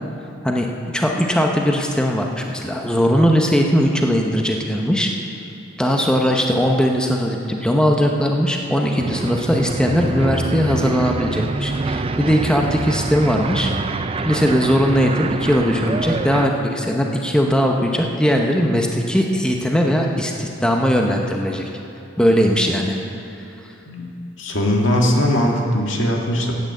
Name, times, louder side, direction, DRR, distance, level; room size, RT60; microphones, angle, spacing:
voice 1, 0.9-5.1 5.8-13.7 14.2-21.7 22.2-23.0, equal, 5° left, 1 dB, 0.9 m, -19 dB
sound 1, 9.0-16.5, right 3 dB, 30° right, 0.4 m, -26 dB
voice 2, 24.4-26.5, left 1 dB, 75° left, 0 dB, 2.0 m, -19 dB
12.0 x 8.9 x 7.9 m, 2.9 s
head